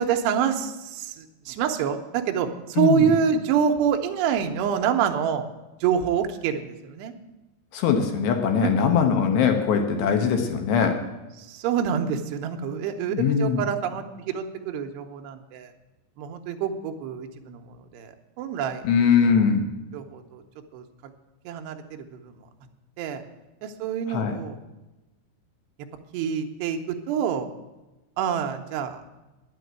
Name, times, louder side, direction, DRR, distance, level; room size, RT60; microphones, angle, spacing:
voice 1, 0.0-5.5 5.8-7.1 8.8-8.9 11.4-15.7 16.2-18.9 19.9-20.4 20.7-20.8 21.5-22.3 23.0-23.2 23.6-24.6 26.1-27.5 28.2-29.2, right 7 dB, 75° right, 5 dB, 2.5 m, -26 dB
voice 2, 2.8-3.1 7.7-11.0 13.1-13.7 18.8-19.7 24.1-24.4, left 6 dB, 75° left, 5 dB, 2.8 m, -21 dB
10.5 x 7.7 x 9.3 m, 1.1 s
omnidirectional pair, 5.8 m